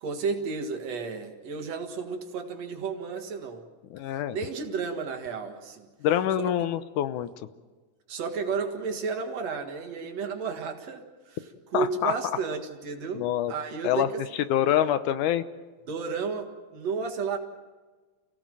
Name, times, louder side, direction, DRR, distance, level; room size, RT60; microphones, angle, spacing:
voice 1, 0.0-3.6 4.1-5.9 6.4-6.5 8.1-11.4 11.7-14.2 14.7-14.9 15.9-17.4, right 5 dB, 60° right, 5 dB, 2.8 m, -32 dB
voice 2, 3.9-4.4 6.0-7.3 11.7-12.1 13.1-13.5 13.8-14.1 14.5-15.4, left 11 dB, 85° left, 12 dB, 2.4 m, -25 dB
29.0 x 16.5 x 7.5 m, 1.3 s
omnidirectional pair, 3.5 m